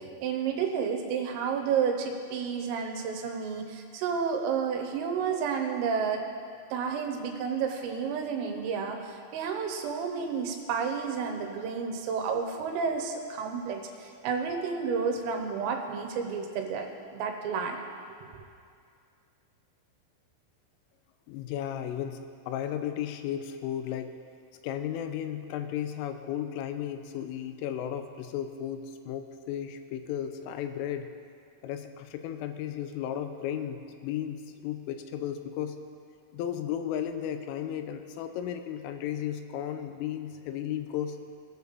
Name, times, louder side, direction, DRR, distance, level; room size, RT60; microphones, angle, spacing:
voice 1, 0.0-6.2 6.7-17.8 18.3-18.4, right 6 dB, 85° right, 3 dB, 3.6 m, -31 dB
voice 2, 21.3-24.1 24.6-31.1 31.6-35.8 36.3-41.2, left 10 dB, 85° left, 8 dB, 3.1 m, -34 dB
19.5 x 6.8 x 4.0 m, 2.3 s
omnidirectional pair, 5.8 m